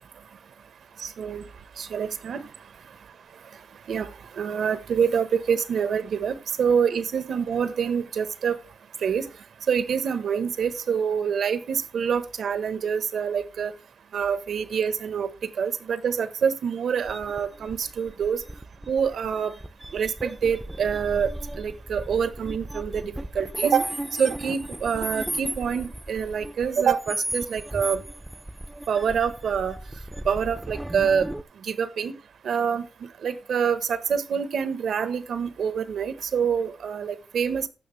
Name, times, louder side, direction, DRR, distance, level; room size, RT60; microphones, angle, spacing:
voice 1, 1.0-1.4 1.8-2.5 3.9-8.6 9.0-9.3 9.7-13.7 14.1-15.3 15.6-18.4 18.9-19.5 19.9-21.3 21.6-23.9 24.2-28.0 28.9-29.8 30.2-31.3 31.6-32.2 32.4-37.7, right 7 dB, 70° right, 12 dB, 1.2 m, -26 dB
sound 1, 17.1-31.4, right 1 dB, 5° right, 0.5 m, -35 dB
15.0 x 6.4 x 3.3 m, 0.33 s
wide cardioid pair, 145°, 0 cm